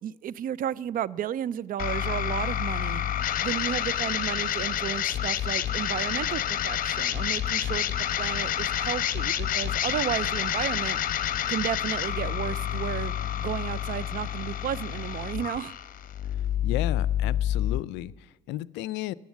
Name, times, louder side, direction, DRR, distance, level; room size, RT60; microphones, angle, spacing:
voice 1, 0.0-3.0 3.4-11.0 11.5-13.1 13.4-15.7, right 10 dB, 45° right, 0.4 m, -33 dB
sound 1, 1.8-17.8, left 10 dB, 45° left, 0.9 m, -28 dB
voice 2, 16.6-19.1, left 16 dB, 70° left, 0.4 m, -34 dB
14.0 x 9.8 x 7.3 m
hypercardioid pair, 70°, 20 cm